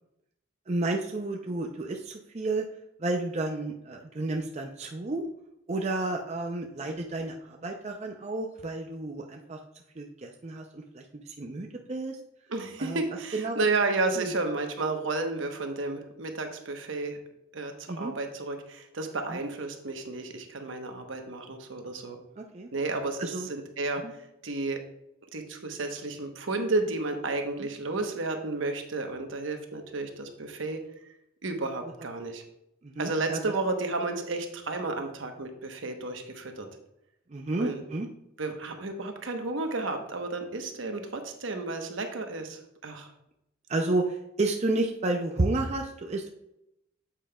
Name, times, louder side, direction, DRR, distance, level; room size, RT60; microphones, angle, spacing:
voice 1, 0.7-2.6 3.0-5.3 5.7-9.6 10.0-12.2 12.8-13.0 13.3-13.6 14.2-14.3 17.9-18.1 19.3-19.4 22.4-22.7 23.2-23.5 27.6-27.7 32.9-33.4 37.3-38.1 43.7-46.3, right 2 dB, 35° right, 2 dB, 0.5 m, -31 dB
voice 2, 12.5-17.2 17.5-22.2 22.7-24.0 24.4-24.8 25.3-31.1 31.4-32.4 33.0-36.7 37.6-37.8 38.4-43.1, right 3 dB, 70° right, 5 dB, 1.0 m, -32 dB
8.5 x 7.4 x 2.3 m, 0.82 s
head